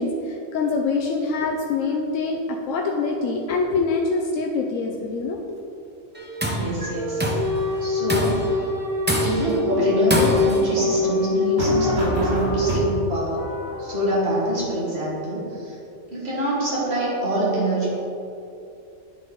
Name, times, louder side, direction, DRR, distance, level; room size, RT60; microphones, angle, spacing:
voice 1, 0.0-5.6, left 3 dB, 90° left, 1 dB, 1.0 m, -25 dB
sound 1, 6.1-12.5, left 3 dB, 30° right, 1.0 m, -24 dB
Tools, 6.2-6.7 7.2-7.6 8.1-8.5 9.1-9.6 10.1-10.7, equal, 15° right, 0.5 m, -24 dB
voice 2, 6.5-7.3 7.8-8.6 9.2-13.4 13.8-15.8 16.1-17.9, right 1 dB, 55° right, -6 dB, 2.1 m, -25 dB
sound 2, 9.6-14.5, right 1 dB, 90° right, 1.9 m, -27 dB
10.5 x 4.2 x 3.8 m, 2.7 s
omnidirectional pair, 1.3 m